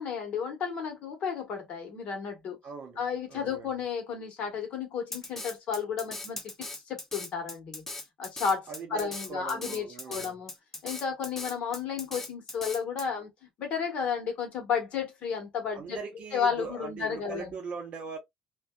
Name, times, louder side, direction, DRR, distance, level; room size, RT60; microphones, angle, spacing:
voice 1, 0.0-2.6 3.0-7.8 8.2-10.5 10.8-13.3 13.6-16.0 16.3-17.6, left 6 dB, 55° left, 1.2 m, -33 dB
voice 2, 2.6-3.0 3.3-3.7 8.7-10.4 15.7-18.2, right 5 dB, 50° right, 0.8 m, -40 dB
Drum kit, 5.1-13.1, left 2 dB, 15° left, 0.4 m, -39 dB
2.6 x 2.2 x 2.2 m
cardioid pair, 125°, 3 cm